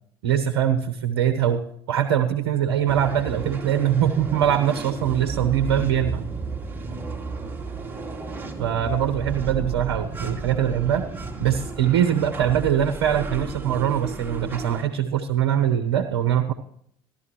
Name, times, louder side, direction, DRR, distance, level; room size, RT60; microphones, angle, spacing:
voice 1, 0.2-6.2 8.6-11.1 11.4-16.5, right 10 dB, 75° right, 8 dB, 0.9 m, -22 dB
sound 1, 2.9-14.8, right 4 dB, 15° right, 2.2 m, -33 dB
15.0 x 11.5 x 3.0 m, 0.67 s
hypercardioid pair, 70°, 13 cm